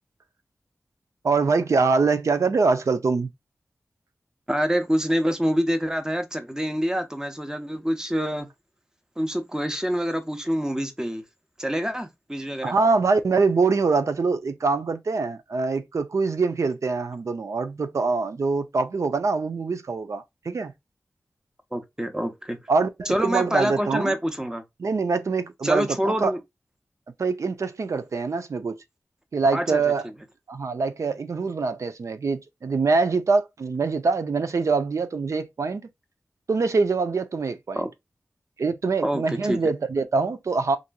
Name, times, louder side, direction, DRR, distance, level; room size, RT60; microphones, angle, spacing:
voice 1, 1.2-3.3 12.6-20.7 22.7-24.1 24.8-26.3 27.2-28.8 29.3-30.0 30.5-35.8 36.5-37.9 38.6-40.8, right 4 dB, 75° right, 0.5 m, -24 dB
voice 2, 4.5-8.5 9.2-11.2 11.6-12.7 21.7-22.6 23.1-24.6 25.6-26.4 29.5-29.8 37.7-37.9 39.0-39.6, equal, 10° right, 0.7 m, -26 dB
2.9 x 2.6 x 2.2 m
wide cardioid pair, 60°, 5 cm